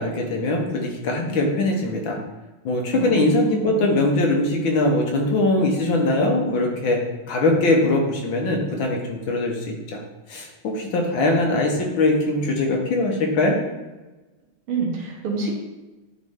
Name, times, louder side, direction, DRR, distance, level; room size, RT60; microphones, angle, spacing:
voice 1, 0.0-2.2 2.6-7.0 7.3-10.0 10.3-13.6, left 2 dB, 70° left, 0 dB, 1.7 m, -21 dB
voice 2, 2.9-3.8 14.7-15.5, right 4 dB, 80° right, 0 dB, 2.0 m, -27 dB
9.2 x 3.1 x 3.6 m, 1.1 s
omnidirectional pair, 2.4 m